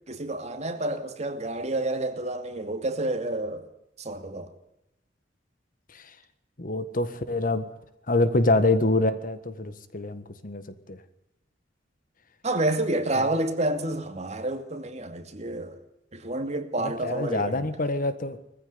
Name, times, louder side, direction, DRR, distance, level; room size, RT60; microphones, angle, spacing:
voice 1, 0.1-3.6 4.0-4.5 12.4-15.8 16.1-17.7, right 2 dB, 40° right, 2.5 m, -29 dB
voice 2, 6.6-7.6 8.1-10.6 10.9-11.0 16.8-18.4, left 2 dB, 45° left, 1.7 m, -25 dB
20.5 x 15.0 x 9.5 m
head